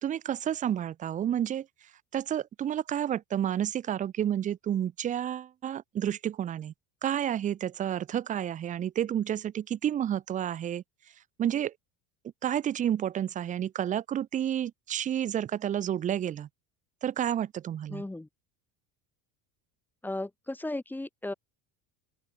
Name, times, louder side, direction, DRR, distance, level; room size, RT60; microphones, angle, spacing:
voice 1, 0.0-1.7 2.1-6.7 7.0-10.8 11.4-11.7 12.4-16.5 17.0-18.0, right 10 dB, 20° right, 0.4 m, -30 dB
voice 2, 17.9-18.3 20.0-21.3, left 2 dB, 5° left, 1.0 m, -35 dB
open air
cardioid pair, 165°, 42 cm